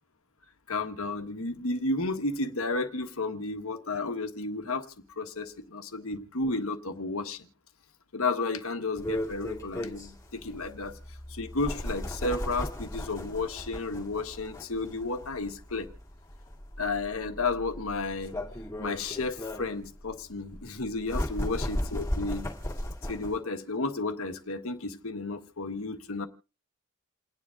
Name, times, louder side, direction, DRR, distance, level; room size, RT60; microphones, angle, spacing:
voice 1, 0.7-7.5 8.1-11.0 11.3-15.9 16.8-18.3 18.8-22.5 23.1-26.3, left 3 dB, 80° left, 1.3 m, -32 dB
sound 1, 9.0-23.4, left 1 dB, 15° left, 2.1 m, -36 dB
29.0 x 9.8 x 2.5 m
head